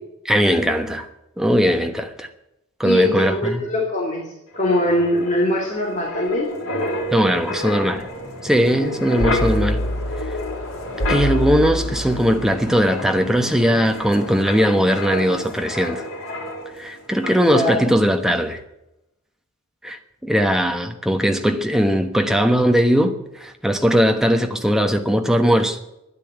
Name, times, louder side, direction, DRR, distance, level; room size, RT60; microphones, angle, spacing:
voice 1, 0.3-1.1 1.4-2.3 2.8-3.6 7.1-8.1 8.4-9.8 11.1-16.0 16.8-18.6 19.8-25.8, equal, ahead, 1.2 m, -19 dB
voice 2, 2.8-6.5 8.8-8.9 17.5-17.8, left 1 dB, 35° left, 2.9 m, -22 dB
Wind, 4.5-16.9 17.2-17.5, left 1 dB, 65° left, 4.0 m, -28 dB
12.5 x 10.0 x 8.3 m
head